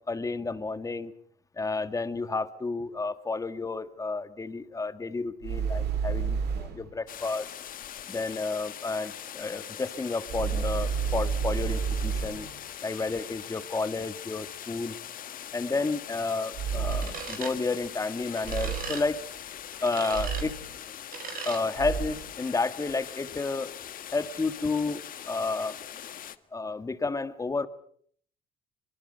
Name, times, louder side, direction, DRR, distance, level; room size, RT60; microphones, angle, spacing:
voice 1, 0.1-1.1 1.6-7.5 8.1-12.5 12.8-15.0 15.5-19.2 19.8-20.5 21.4-23.7 24.1-25.8 26.5-27.7, left 3 dB, 20° left, 12 dB, 1.7 m, -31 dB
sound 1, 5.4-6.9 10.3-12.6 16.5-17.4 18.4-19.1 20.1-20.8 21.8-22.3, right 6 dB, 75° right, 3.2 m, -30 dB
sound 2, 7.1-26.4, left 10 dB, 55° left, 1.4 m, -42 dB
sound 3, 16.9-17.5 18.4-19.0 19.8-20.4 21.1-21.6, right 7 dB, 55° right, 5.0 m, -38 dB
23.5 x 23.5 x 6.7 m, 0.62 s
cardioid pair, 110°, 17 cm